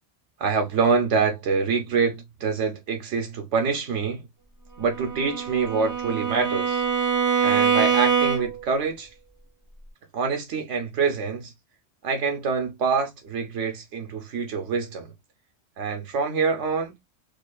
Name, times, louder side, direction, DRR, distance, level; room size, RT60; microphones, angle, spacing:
voice 1, 0.4-4.2 4.8-6.9 7.4-9.1 10.1-11.5 12.0-15.1 15.8-16.9, right 5 dB, 75° right, 0.9 m, -25 dB
Bowed string instrument, 4.9-8.7, right 6 dB, 20° right, 0.5 m, -24 dB
2.4 x 2.4 x 2.2 m
omnidirectional pair, 1.3 m